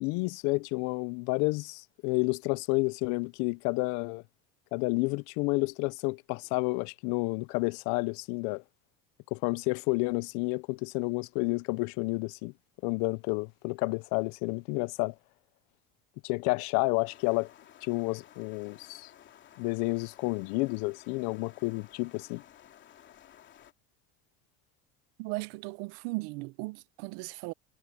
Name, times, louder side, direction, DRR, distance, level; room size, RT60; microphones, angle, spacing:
voice 1, 0.0-4.2 4.7-8.6 9.3-12.5 12.8-15.1 16.2-17.5 17.8-19.1 19.6-22.4, left 27 dB, 70° left, 0.6 m, -30 dB
sound 1, 17.0-23.7, left 10 dB, 40° left, 3.2 m, -55 dB
voice 2, 25.2-27.5, right 25 dB, 70° right, 0.6 m, -37 dB
cardioid pair, 145°, 30 cm